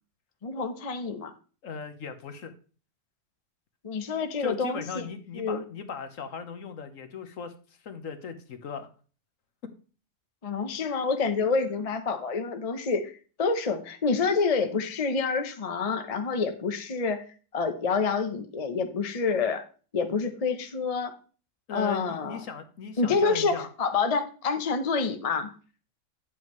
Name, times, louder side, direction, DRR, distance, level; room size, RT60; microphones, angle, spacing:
voice 1, 0.4-1.3 3.8-5.1 5.3-5.6 10.4-17.2 17.5-19.6 19.9-21.2 21.7-22.4 23.0-25.5, left 4 dB, 35° left, 7 dB, 0.6 m, -28 dB
voice 2, 1.6-2.5 4.4-7.5 7.8-8.9 21.7-23.7, left 6 dB, 55° left, 9 dB, 1.3 m, -38 dB
9.1 x 8.1 x 3.1 m, 0.38 s
omnidirectional pair, 1.7 m